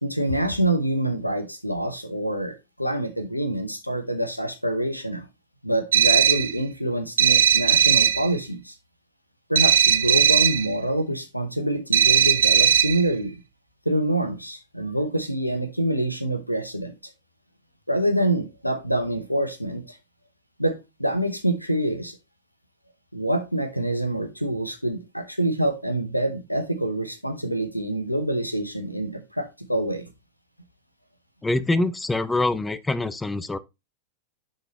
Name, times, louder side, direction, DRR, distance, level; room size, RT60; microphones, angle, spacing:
voice 1, 0.0-5.3 5.6-8.7 9.5-13.4 13.8-16.9 17.9-20.0 20.6-22.2 23.1-30.1, right 1 dB, 90° left, 0.9 m, -26 dB
sound 1, 5.9-6.6 7.2-8.3 9.5-10.7 11.9-13.1, right 9 dB, 65° right, 0.5 m, -18 dB
voice 2, 31.4-33.6, left 2 dB, 10° left, 0.4 m, -24 dB
10.5 x 4.0 x 3.0 m
figure-of-eight pair, 90°, 0 cm